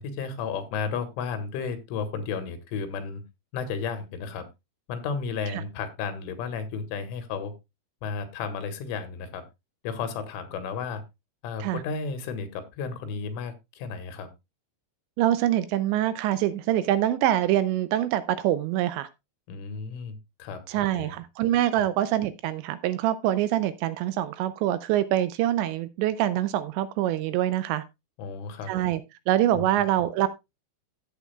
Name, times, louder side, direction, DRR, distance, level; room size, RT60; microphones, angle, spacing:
voice 1, 0.0-3.2 3.5-4.5 4.9-7.5 8.0-9.4 9.8-11.0 11.4-14.3 19.5-21.2 21.8-21.9 28.2-28.7 29.5-29.8, left 5 dB, 85° left, 3.9 m, -33 dB
voice 2, 15.2-19.1 20.7-27.8 28.7-29.0 29.3-30.3, right 12 dB, 80° right, 2.7 m, -25 dB
14.5 x 8.3 x 2.3 m
omnidirectional pair, 5.5 m